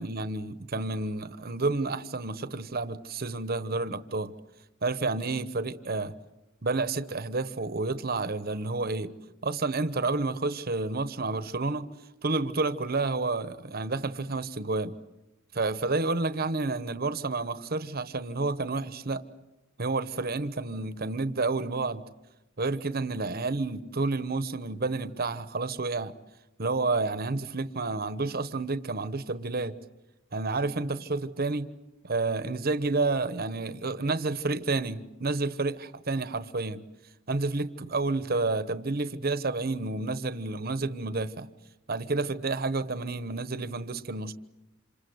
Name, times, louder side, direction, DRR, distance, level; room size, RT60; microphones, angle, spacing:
voice 1, 0.0-4.3 4.8-6.1 6.6-9.1 9.4-11.9 12.2-14.9 15.5-19.2 19.8-22.0 22.6-26.1 26.6-29.7 30.3-31.7 32.0-36.8 37.3-41.5 41.9-44.3, right 3 dB, 50° right, 13 dB, 1.1 m, -30 dB
27.5 x 27.0 x 8.0 m, 0.95 s
head